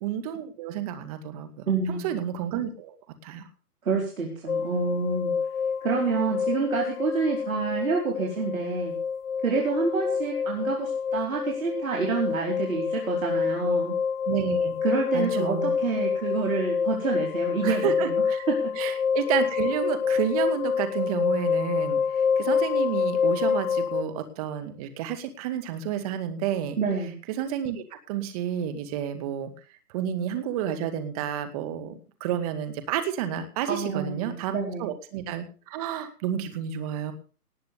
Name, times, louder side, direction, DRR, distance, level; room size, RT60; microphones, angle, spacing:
voice 1, 0.0-3.0 3.2-3.5 14.3-14.7 15.1-15.8 17.6-18.4 18.8-22.0 22.4-26.8 27.3-29.5 29.9-37.1, right 9 dB, 25° right, 8 dB, 2.1 m, -30 dB
voice 2, 1.7-2.1 3.8-5.3 5.8-8.9 9.4-13.9 14.8-18.6 26.8-27.1 33.7-34.9, right 4 dB, 60° right, 1 dB, 4.4 m, -28 dB
sound 1, 4.5-24.0, left 6 dB, 55° left, 1.3 m, -27 dB
19.0 x 7.8 x 6.9 m, 0.39 s
hypercardioid pair, 150°, 46 cm